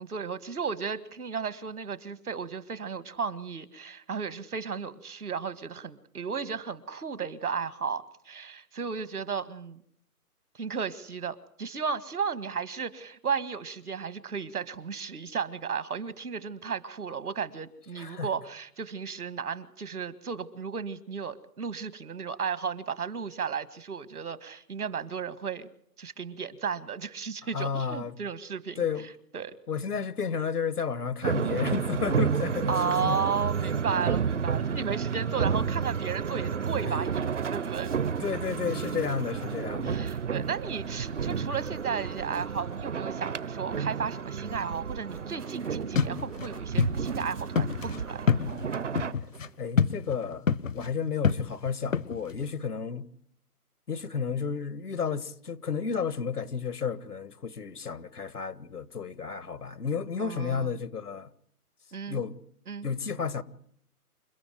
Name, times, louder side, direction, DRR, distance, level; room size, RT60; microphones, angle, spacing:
voice 1, 0.0-9.8 10.5-25.7 26.0-28.8 29.3-29.6 32.7-37.9 39.8-48.3 60.2-60.7 61.9-62.2 62.7-62.9, right 6 dB, 75° right, 1.9 m, -34 dB
voice 2, 17.9-18.3 27.5-28.2 28.8-29.1 29.7-33.2 36.8-36.9 38.2-40.0 49.6-53.1 53.9-61.3 62.1-62.3 62.8-63.4, left 6 dB, 80° left, 1.7 m, -32 dB
sound 1, 31.2-49.1, right 6 dB, 50° right, 0.9 m, -31 dB
sound 2, 36.8-50.1, right 4 dB, 90° right, 2.7 m, -53 dB
sound 3, 46.0-46.5 46.8-46.9 47.2-47.3 47.6-49.5 49.8-50.2 50.5-50.9 51.2-52.4, left 6 dB, 55° left, 1.0 m, -26 dB
29.0 x 13.0 x 9.3 m
hypercardioid pair, 165°, 45 cm